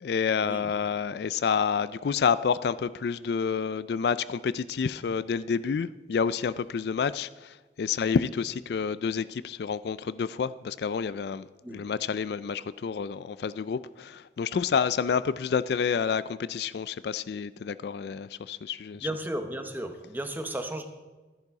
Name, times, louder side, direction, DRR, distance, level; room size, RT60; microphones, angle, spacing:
voice 1, 0.0-19.1, left 6 dB, 65° left, 0.3 m, -29 dB
voice 2, 19.0-20.9, right 1 dB, 10° right, 0.9 m, -34 dB
13.0 x 10.5 x 4.8 m
head